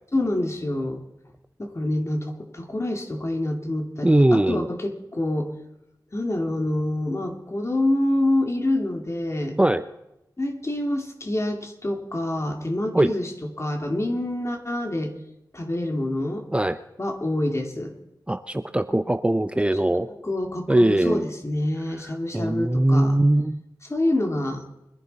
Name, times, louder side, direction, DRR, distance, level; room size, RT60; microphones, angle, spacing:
voice 1, 0.1-1.0 1.6-5.5 6.1-9.6 10.4-15.1 15.5-16.5 17.0-17.9 20.1-23.2 23.9-24.6, left 1 dB, 40° left, 3 dB, 2.3 m, -26 dB
voice 2, 4.0-4.7 9.6-9.8 12.9-13.1 16.5-16.8 18.3-20.1 20.7-21.2 22.3-23.6, right 1 dB, 15° right, 11 dB, 0.6 m, -20 dB
22.5 x 11.0 x 4.2 m, 0.90 s
wide cardioid pair, 50°, 8 cm